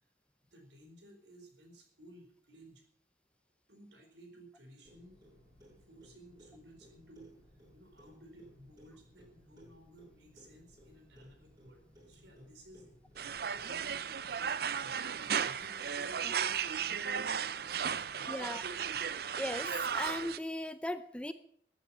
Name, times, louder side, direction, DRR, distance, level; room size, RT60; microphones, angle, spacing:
voice 1, 0.5-2.8 3.7-5.2 5.9-7.3 7.7-12.9 13.6-18.6, right 1 dB, 75° right, 4 dB, 4.7 m, -57 dB
Clock, 4.8-13.9, equal, 20° right, 7.6 m, -61 dB
sound 1, 13.2-20.4, right 7 dB, 60° right, 0.6 m, -35 dB
voice 2, 18.3-18.6 19.4-21.3, left 1 dB, 5° left, 12 dB, 0.6 m, -38 dB
14.0 x 9.1 x 8.5 m, 0.64 s
head